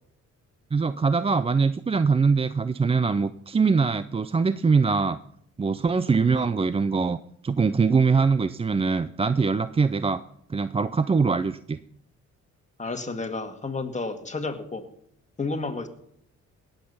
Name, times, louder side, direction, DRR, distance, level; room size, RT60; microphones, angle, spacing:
voice 1, 0.7-5.2 5.6-7.2 7.4-10.2 10.5-11.8, right 4 dB, 20° right, 13 dB, 0.4 m, -23 dB
voice 2, 12.8-14.8 15.4-15.9, left 3 dB, 25° left, 6 dB, 1.9 m, -31 dB
18.0 x 8.0 x 5.5 m, 0.69 s
cardioid pair, 90°, 30 cm